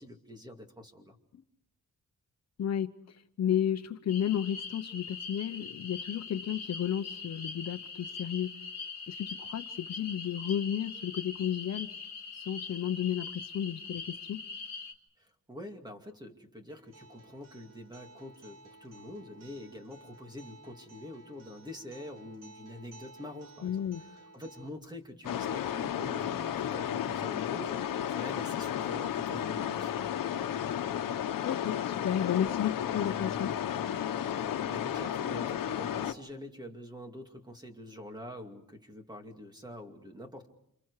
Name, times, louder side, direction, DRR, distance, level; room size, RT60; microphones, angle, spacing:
voice 1, 0.0-1.2 15.2-30.0 34.6-40.5, left 1 dB, 15° right, 2.4 m, -46 dB
voice 2, 2.6-8.5 9.1-11.9 12.3-14.5 23.6-24.0 31.4-33.5, left 10 dB, 55° left, 0.9 m, -33 dB
sound 1, 4.1-14.9, left 4 dB, 30° left, 2.9 m, -42 dB
Acoustic guitar, 16.7-24.7, right 2 dB, 80° right, 3.4 m, -55 dB
sound 2, 25.2-36.1, left 10 dB, 85° left, 1.1 m, -33 dB
30.0 x 27.5 x 4.9 m
wide cardioid pair, 165°, 32 cm